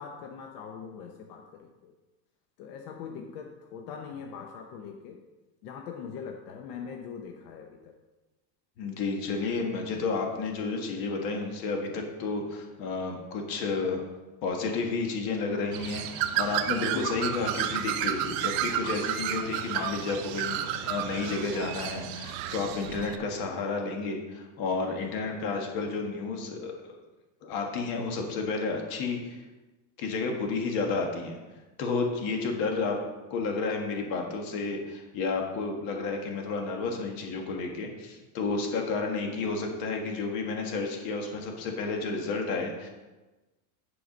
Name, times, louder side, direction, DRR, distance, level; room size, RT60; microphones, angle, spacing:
voice 1, 0.0-1.9 2.6-5.2 5.6-7.9, left 6 dB, 70° left, 3 dB, 1.0 m, -42 dB
voice 2, 8.8-14.0 14.4-26.9 27.4-29.4 30.0-31.4 31.8-33.0 33.3-42.9, left 4 dB, 45° left, 2 dB, 1.6 m, -31 dB
Bird, 15.7-23.2, right 11 dB, 45° right, 0.6 m, -31 dB
10.0 x 4.8 x 5.2 m, 1.2 s
cardioid pair, 170°, 48 cm